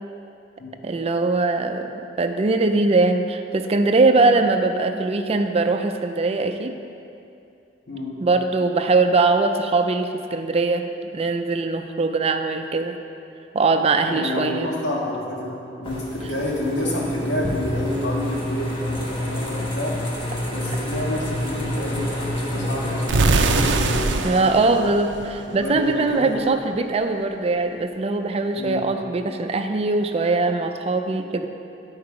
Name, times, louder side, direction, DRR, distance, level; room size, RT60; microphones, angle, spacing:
voice 1, 0.8-6.8 8.2-13.0 13.5-14.7 24.2-31.5, right 3 dB, 35° right, 6 dB, 0.4 m, -21 dB
voice 2, 7.9-8.2 14.0-20.0 20.5-24.6 25.5-26.6 28.5-28.9, left 1 dB, 85° left, -4 dB, 1.8 m, -29 dB
sound 1, 15.8-24.0, left 1 dB, 30° left, 1.3 m, -28 dB
sound 2, 23.1-25.9, right 3 dB, 90° right, 0.5 m, -23 dB
10.5 x 4.6 x 4.8 m, 2.6 s
head